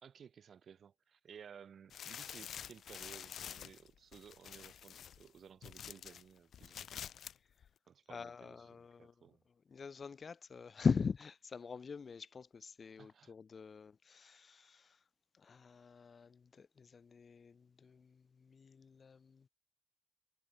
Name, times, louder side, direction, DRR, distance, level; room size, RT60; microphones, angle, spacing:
voice 1, 0.0-6.9 7.9-9.4 13.0-13.3, right 7 dB, 60° right, 1.2 m, -57 dB
sound 1, 1.9-6.2 6.5-7.4 7.6-7.7, left 9 dB, 70° left, 0.6 m, -48 dB
voice 2, 8.1-9.1 9.7-14.9 15.4-19.4, left 5 dB, 45° left, 0.9 m, -41 dB
supercardioid pair, 60°, 0 cm